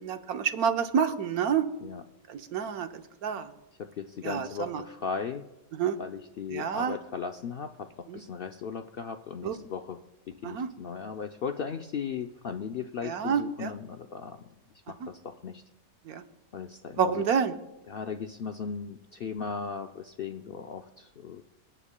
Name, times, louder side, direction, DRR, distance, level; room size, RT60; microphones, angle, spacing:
voice 1, 0.0-1.6 2.3-3.5 4.2-4.8 5.7-6.0 6.5-6.9 8.1-8.2 9.4-9.6 10.4-10.7 13.0-13.7 15.0-15.1 16.1-16.2 17.0-17.5, right 7 dB, 85° right, 8 dB, 1.4 m, -28 dB
voice 2, 3.8-5.5 6.0-10.0 10.3-14.4 14.9-15.6 16.5-17.3 17.9-21.4, left 6 dB, 70° left, 6 dB, 0.5 m, -37 dB
27.0 x 10.0 x 2.2 m, 0.98 s
omnidirectional pair, 1.5 m